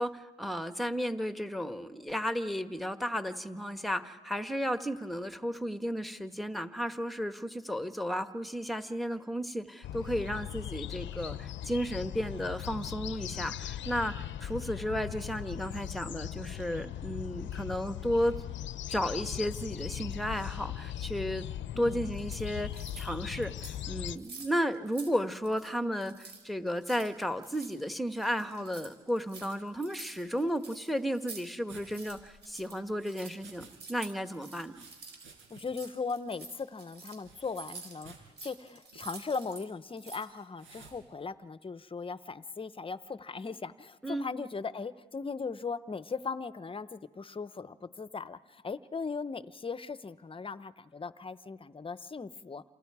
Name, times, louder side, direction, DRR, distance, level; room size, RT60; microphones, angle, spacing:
voice 1, 0.0-14.1 14.4-18.3 18.9-21.5 21.8-34.8 44.0-44.3, equal, ahead, 8 dB, 1.3 m, -33 dB
sound 1, 9.8-24.2, left 12 dB, 70° left, 0.7 m, -39 dB
voice 2, 21.7-22.1 35.5-38.1 38.4-52.6, left 4 dB, 25° left, 14 dB, 0.8 m, -38 dB
sound 2, 22.1-23.1 23.4-23.8 24.1-25.1 25.4-25.7 26.0-31.5 31.7-39.7 39.9-40.4, right 4 dB, 60° right, 5.6 m, -49 dB
sound 3, 31.7-33.8 34.0-35.8 36.1-36.2 37.2-38.3 38.9-39.1 40.6-41.0, right 4 dB, 85° right, 5.4 m, -55 dB
29.0 x 27.0 x 4.8 m, 1.3 s
cardioid pair, 90°, 20 cm